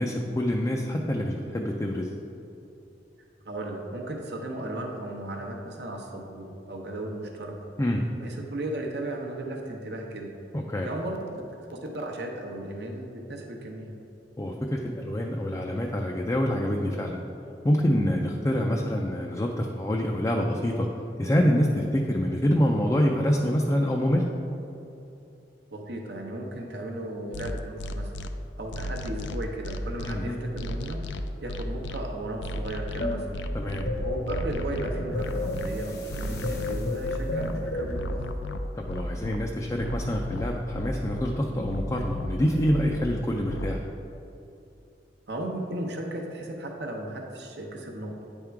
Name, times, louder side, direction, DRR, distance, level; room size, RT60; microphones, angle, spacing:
voice 1, 0.0-2.1 7.8-8.0 10.5-10.9 14.4-17.2 17.6-20.9 21.2-24.3 30.0-30.4 33.5-33.9 38.8-43.8, equal, 20° left, 0 dB, 0.4 m, -26 dB
voice 2, 3.4-7.6 8.2-10.3 10.8-11.2 11.7-14.0 25.7-28.1 28.6-31.0 31.4-33.3 34.0-38.3 45.3-48.2, right 1 dB, 65° right, 1 dB, 0.8 m, -35 dB
sound 1, 27.3-28.3 28.7-30.1 30.6-32.0 32.4-33.8 34.3-35.7 36.1-37.5 37.9-39.4 39.8-41.2 41.6-43.1 43.5-43.7, left 1 dB, 90° left, 0.4 m, -35 dB
sound 2, 33.0-38.2, left 1 dB, 65° left, 1.0 m, -32 dB
9.1 x 3.6 x 4.5 m, 2.9 s
head